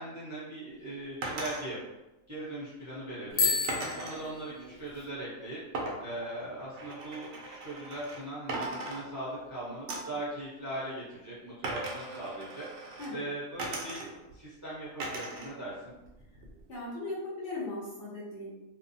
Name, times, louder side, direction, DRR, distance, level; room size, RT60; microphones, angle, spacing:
voice 1, 0.0-1.8 2.3-3.5 3.9-5.6 6.0-12.6 13.1-16.0, right 1 dB, 20° right, -9 dB, 0.5 m, -40 dB
sound 1, 1.2-1.6 3.7-4.2 5.7-8.2 8.5-9.5 9.9-10.2 11.6-13.1 13.6-14.3 15.0-15.5 15.9-16.7, right 2 dB, 65° right, 0.8 m, -38 dB
Bicycle bell, 3.3-5.0, left 4 dB, 75° left, 1.0 m, -31 dB
voice 2, 16.7-18.6, left 2 dB, 50° left, -7 dB, 0.8 m, -38 dB
2.6 x 2.2 x 2.6 m, 1.0 s
omnidirectional pair, 1.4 m